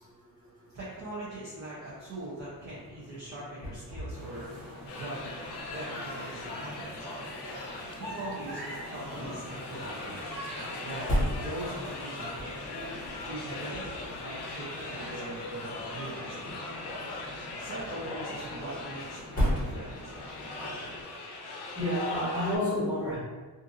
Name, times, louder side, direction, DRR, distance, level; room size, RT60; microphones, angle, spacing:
voice 1, 0.7-5.4 5.7-6.9 8.0-10.2 10.8-12.5 13.2-13.9 14.2-16.6 17.6-20.1, right 1 dB, 40° right, -9 dB, 0.7 m, -41 dB
sound 1, 2.3-20.4, equal, 20° left, 0.9 m, -39 dB
sound 2, 4.1-21.0, equal, 55° right, 1.4 m, -43 dB
sound 3, 4.9-22.6, left 2 dB, 85° left, 0.6 m, -41 dB
voice 2, 21.7-23.2, left 1 dB, 5° right, -13 dB, 1.4 m, -30 dB
2.6 x 2.6 x 2.5 m, 1.3 s
wide cardioid pair, 170°, 39 cm